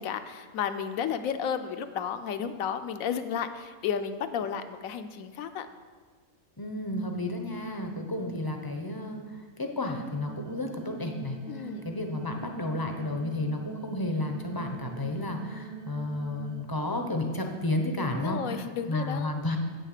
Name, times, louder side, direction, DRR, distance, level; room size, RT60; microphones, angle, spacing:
voice 1, 0.0-5.7 11.5-11.9 18.0-19.3, left 8 dB, 75° left, 9 dB, 1.0 m, -33 dB
voice 2, 6.6-19.6, left 1 dB, 25° left, 3 dB, 0.5 m, -32 dB
sound 1, 10.2-16.6, right 5 dB, 90° right, 1.4 m, -43 dB
8.2 x 6.4 x 6.6 m, 1.5 s
omnidirectional pair, 1.5 m